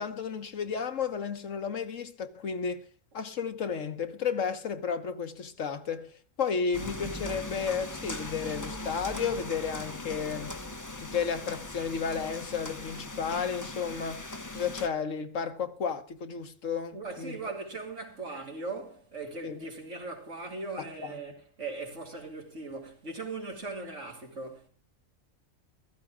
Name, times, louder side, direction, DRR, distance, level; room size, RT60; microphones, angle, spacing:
voice 1, 0.0-2.9 3.1-10.5 11.0-14.2 14.5-17.5 19.4-19.6 20.8-21.2, left 6 dB, 75° left, 1.5 m, -33 dB
sound 1, 6.7-14.9, left 2 dB, 15° left, 0.9 m, -39 dB
voice 2, 16.9-24.7, right 3 dB, 65° right, 3.6 m, -39 dB
15.5 x 13.5 x 3.7 m
omnidirectional pair, 1.3 m